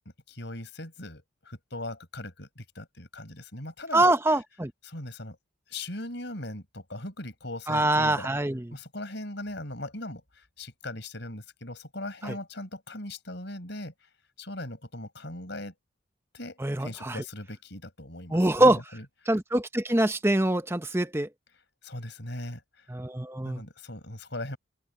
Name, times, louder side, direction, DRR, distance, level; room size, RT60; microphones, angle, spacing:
voice 1, 0.3-4.4 4.8-5.4 5.7-8.3 8.7-14.1 14.4-15.7 16.3-19.0 21.8-22.9 23.4-24.6, left 1 dB, 60° left, 6.1 m, -39 dB
voice 2, 3.9-4.7 7.7-8.6 12.3-12.4 16.6-17.2 18.3-18.8 19.3-21.3 22.9-23.6, right 1 dB, 10° right, 0.7 m, -24 dB
open air
head